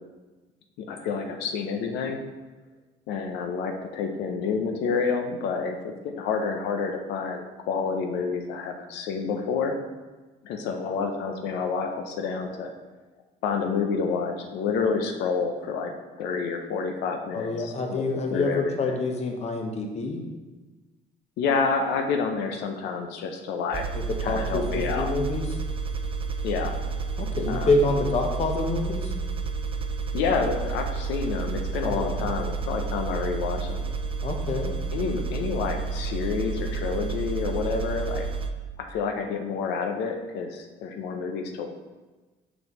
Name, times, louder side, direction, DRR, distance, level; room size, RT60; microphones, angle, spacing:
voice 1, 0.8-2.2 3.1-9.7 10.4-12.7 13.4-15.9 16.2-18.0 18.3-19.0 21.4-23.8 24.2-25.1 26.4-26.8 27.5-27.7 30.1-33.8 34.9-38.3 38.8-41.7, left 5 dB, 85° left, 4 dB, 0.6 m, -29 dB
voice 2, 17.3-20.2 24.1-25.5 27.2-29.1 31.8-32.3 34.2-34.7, left 3 dB, 40° left, 3 dB, 0.9 m, -27 dB
sound 1, 23.7-38.5, right 4 dB, 35° right, 0.4 m, -30 dB
6.1 x 5.2 x 3.1 m, 1.2 s
cardioid pair, 110°, 17 cm